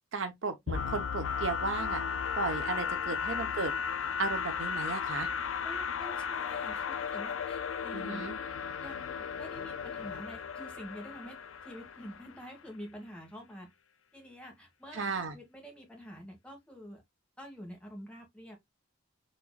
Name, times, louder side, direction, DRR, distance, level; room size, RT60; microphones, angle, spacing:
voice 1, 0.1-2.0 2.3-3.7 4.2-5.3 7.9-8.3 14.9-15.4, right 4 dB, 75° right, 0.8 m, -35 dB
sound 1, 0.7-12.4, left 6 dB, 85° left, 0.5 m, -35 dB
voice 2, 5.6-8.2 8.8-11.4 11.6-13.7 14.1-17.0 17.4-18.6, equal, 5° left, 1.4 m, -47 dB
4.2 x 3.1 x 2.2 m
head